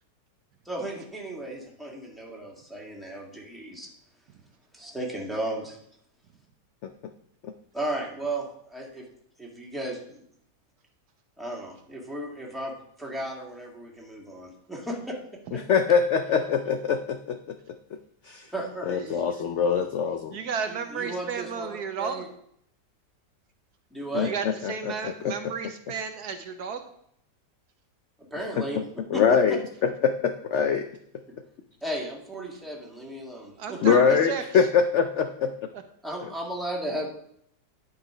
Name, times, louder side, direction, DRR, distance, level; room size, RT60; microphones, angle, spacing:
voice 1, 0.7-3.9 4.7-5.8 7.7-9.0 9.4-10.2 11.4-15.2 18.5-19.0 20.7-21.7 22.0-22.3 23.9-24.3 28.3-28.8 31.8-34.0 36.0-37.1, right 1 dB, ahead, -3 dB, 2.1 m, -35 dB
voice 2, 15.5-17.4 18.3-18.5 18.9-20.4 24.1-24.3 24.6-24.7 25.0-25.3 28.6-28.8 29.1-29.6 30.0-30.8 33.8-35.5, left 6 dB, 70° left, 7 dB, 0.7 m, -23 dB
voice 3, 20.3-22.2 24.2-26.9 33.6-34.7 35.7-35.8, right 6 dB, 70° right, 7 dB, 1.3 m, -33 dB
11.0 x 5.8 x 5.0 m, 0.69 s
omnidirectional pair, 1.9 m